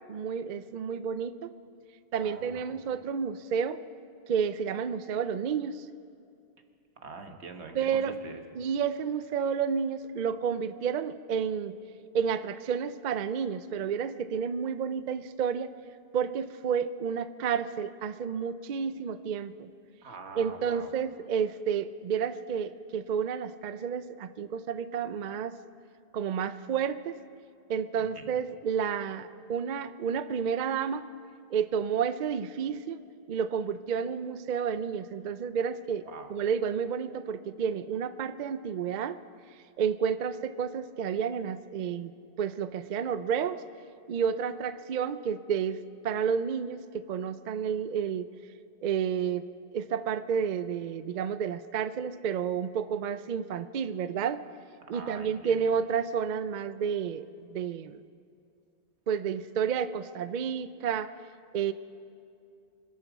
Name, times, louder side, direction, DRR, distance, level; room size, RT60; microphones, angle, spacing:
voice 1, 0.0-1.5 2.1-3.8 4.3-5.9 7.7-8.2 8.6-11.8 12.1-15.7 16.1-19.7 20.4-25.6 26.1-27.1 27.7-31.0 31.5-33.0 33.3-36.0 36.3-39.2 39.8-42.1 42.4-43.6 44.1-48.3 48.8-49.4 49.7-54.4 54.9-58.0 59.1-61.1 61.5-61.7, right 7 dB, 55° right, 12 dB, 0.6 m, -30 dB
voice 2, 2.2-2.8 7.0-8.4 20.0-20.9 28.0-28.4 36.0-36.3 54.9-55.6, right 4 dB, 85° right, 5 dB, 1.5 m, -44 dB
25.0 x 8.4 x 6.2 m, 2.5 s
omnidirectional pair, 1.1 m